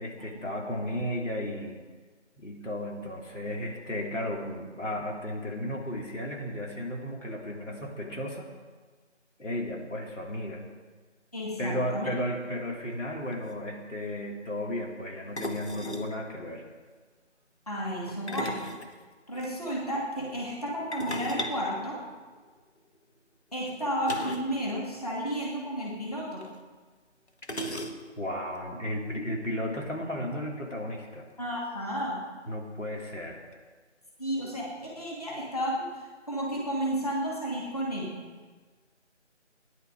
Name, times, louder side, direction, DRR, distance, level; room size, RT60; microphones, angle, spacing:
voice 1, 0.0-1.7 2.4-8.5 9.4-10.6 11.6-16.7 28.2-31.3 32.5-33.5, left 1 dB, 85° left, 0 dB, 3.3 m, -34 dB
voice 2, 11.3-12.1 17.7-18.6 19.3-22.0 23.5-26.4 31.4-32.2 34.2-38.2, equal, 30° left, -4 dB, 2.6 m, -32 dB
sound 1, 13.0-13.1 13.3-13.5 15.4-16.1 18.1-19.5 20.9-22.6 24.0-24.6 24.8-24.9 25.2-25.4 26.4-26.5 27.4-28.3, equal, 65° left, 1.7 m, -37 dB
17.0 x 11.0 x 4.9 m, 1.4 s
figure-of-eight pair, 180°, 36 cm